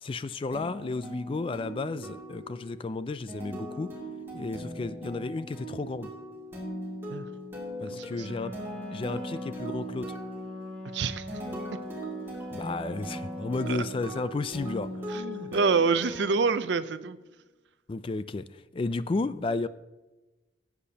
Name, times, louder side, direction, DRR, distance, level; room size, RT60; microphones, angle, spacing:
voice 1, 0.0-3.9 4.3-6.1 7.8-8.6 8.9-10.2 12.5-14.9 17.9-18.5 18.7-19.7, left 3 dB, 30° left, 14 dB, 0.3 m, -33 dB
sound 1, 0.5-17.2, equal, 15° right, 2.5 m, -39 dB
voice 2, 7.9-8.5 10.9-11.3 13.7-13.8 15.1-17.2, right 4 dB, 70° right, 13 dB, 0.5 m, -27 dB
Wind instrument woodwind instrument, 8.1-14.2, left 1 dB, 5° left, 3.5 m, -42 dB
18.5 x 8.3 x 2.8 m, 1.1 s
head